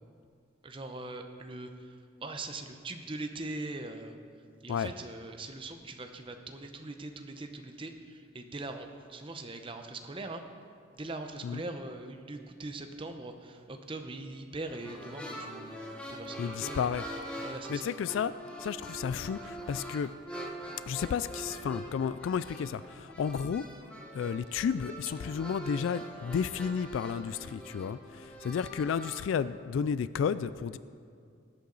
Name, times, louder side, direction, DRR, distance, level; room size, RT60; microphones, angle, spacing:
voice 1, 0.6-1.9 2.2-4.1 4.6-10.4 11.0-16.8 17.4-17.9, right 2 dB, 25° right, 5 dB, 0.7 m, -41 dB
sound 1, 14.7-29.2, right 1 dB, 5° left, 1.1 m, -43 dB
voice 2, 16.4-17.0 17.3-18.3 18.6-20.1 20.9-23.6 24.1-30.8, left 7 dB, 80° left, 15 dB, 0.3 m, -32 dB
19.0 x 8.5 x 3.9 m, 2.3 s
head